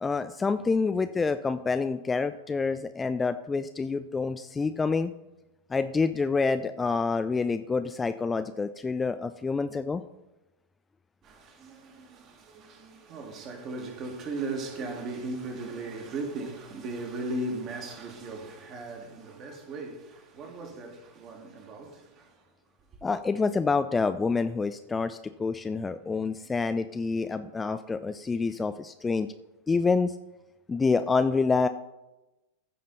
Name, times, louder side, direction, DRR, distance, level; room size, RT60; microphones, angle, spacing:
voice 1, 0.0-5.1 5.7-10.0 23.0-29.3 29.7-30.2 30.7-31.7, left 4 dB, 15° left, 0.3 m, -27 dB
voice 2, 11.2-22.4, right 2 dB, 35° right, 2.0 m, -37 dB
15.0 x 5.1 x 4.0 m
figure-of-eight pair, 90°, 0 cm